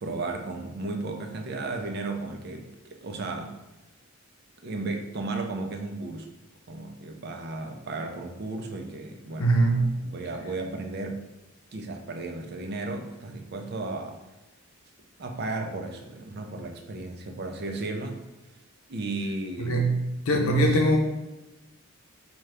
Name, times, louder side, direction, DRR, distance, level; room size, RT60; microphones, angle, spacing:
voice 1, 0.0-3.6 4.6-6.3 6.7-11.2 11.7-14.2 15.2-18.3 18.9-19.9 20.3-20.9, right 2 dB, 45° right, 4 dB, 0.4 m, -34 dB
voice 2, 9.4-10.0 19.6-21.0, right 1 dB, 80° left, 2 dB, 0.7 m, -22 dB
4.7 x 2.3 x 3.2 m, 1.0 s
head